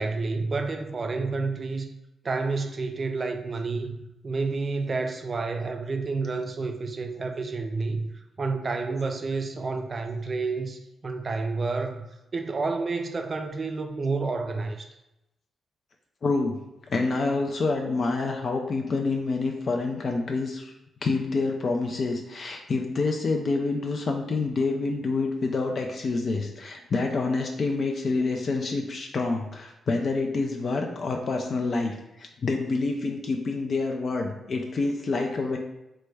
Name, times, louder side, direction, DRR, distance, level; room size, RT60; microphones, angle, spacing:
voice 1, 0.0-1.9 2.2-8.1 8.4-14.9, right 3 dB, 40° right, 0.4 m, -30 dB
voice 2, 16.2-16.6 16.9-20.7 21.0-35.6, left 3 dB, 55° left, 0.3 m, -27 dB
3.0 x 2.2 x 3.2 m
cardioid pair, 75°, 0 cm